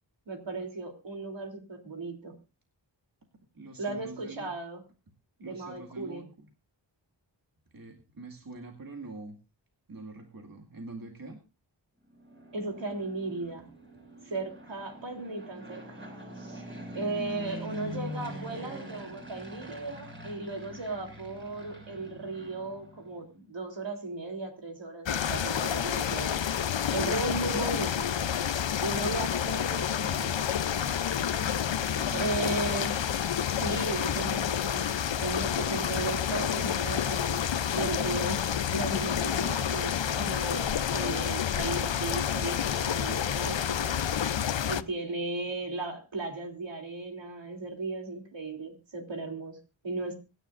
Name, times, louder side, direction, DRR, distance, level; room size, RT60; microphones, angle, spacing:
voice 1, 0.3-2.3 3.8-4.8 5.4-6.2 12.5-13.7 14.2-16.0 16.4-16.6 16.9-26.6 26.9-28.1 28.8-30.5 32.1-32.9 33.5-43.9 44.7-50.1, right 2 dB, 70° right, 3 dB, 3.4 m, -36 dB
voice 2, 3.5-4.5 5.4-6.5 7.7-9.4 9.9-11.4 27.4-27.6 31.4-32.7, right 2 dB, 50° right, 1 dB, 2.2 m, -44 dB
Fixed-wing aircraft airplane, 12.1-23.2, equal, 25° right, 6.0 m, -43 dB
sound 1, 25.0-44.8, left 9 dB, 70° left, 0.8 m, -29 dB
25.0 x 10.0 x 2.6 m, 0.29 s
wide cardioid pair, 80°, 46 cm